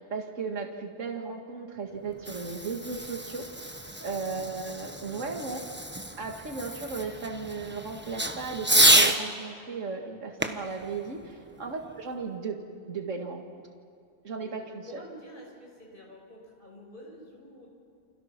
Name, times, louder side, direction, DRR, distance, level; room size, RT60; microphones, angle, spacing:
voice 1, 0.0-3.5 4.0-5.7 6.2-12.6 12.9-13.4 14.2-14.8, right 4 dB, 70° right, 3 dB, 2.3 m, -35 dB
Fireworks, 2.0-9.2 10.4-12.0, right 1 dB, 10° right, 1.1 m, -28 dB
voice 2, 4.8-5.1 11.4-11.6 14.3-17.7, left 1 dB, 40° left, -2 dB, 6.2 m, -49 dB
29.5 x 27.0 x 6.0 m, 2.2 s
omnidirectional pair, 1.4 m